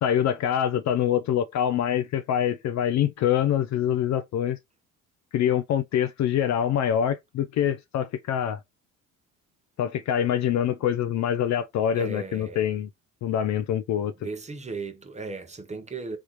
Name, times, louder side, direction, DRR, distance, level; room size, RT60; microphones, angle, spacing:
voice 1, 0.0-4.6 5.3-8.6 9.8-12.9 13.2-14.1, left 10 dB, 45° left, 0.4 m, -25 dB
voice 2, 11.9-12.6 14.2-16.2, right 3 dB, 15° right, 0.7 m, -36 dB
3.3 x 2.3 x 2.9 m
hypercardioid pair, 65°, 41 cm